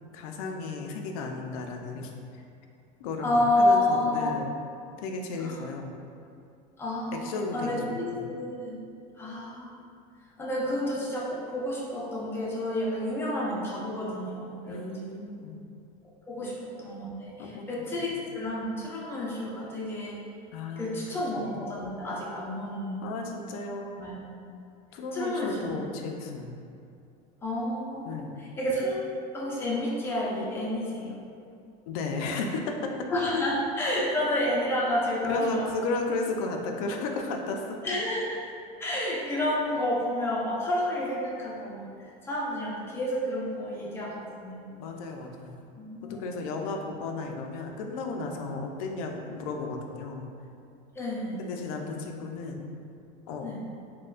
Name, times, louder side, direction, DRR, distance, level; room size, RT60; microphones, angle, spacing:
voice 1, 0.1-2.4 3.0-4.5 5.0-5.9 7.1-7.8 8.1-8.3 14.7-15.6 16.4-16.5 17.4-18.1 20.5-21.0 21.3-21.6 23.0-24.2 24.9-26.6 28.0-28.4 31.9-32.9 33.3-33.4 35.2-37.8 44.8-45.6 46.0-50.3 51.4-52.6 53.3-53.5, left 3 dB, 85° left, 3 dB, 0.4 m, -34 dB
voice 2, 3.2-4.3 5.4-5.6 6.8-7.3 7.5-8.8 9.1-9.7 10.4-15.3 16.3-20.2 20.8-23.1 24.0-24.2 25.1-25.8 27.4-29.0 29.3-31.2 33.1-35.7 37.8-38.4 38.8-44.8 45.8-46.2 50.9-51.5 53.4-53.6, left 1 dB, 15° left, -5 dB, 0.4 m, -30 dB
4.2 x 2.1 x 2.4 m, 2.5 s
cardioid pair, 165°, 18 cm